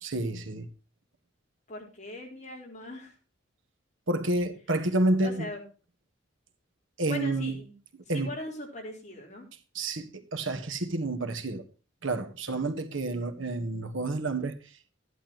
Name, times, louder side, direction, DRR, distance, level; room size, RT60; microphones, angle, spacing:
voice 1, 0.0-0.7 4.1-5.5 7.0-7.6 8.1-8.3 9.7-11.6 12.0-14.5, right 2 dB, 75° right, 1.5 m, -29 dB
voice 2, 1.7-3.1 5.2-5.6 7.1-7.7 8.1-9.5, left 1 dB, 40° left, 4.6 m, -40 dB
14.0 x 11.5 x 3.0 m
head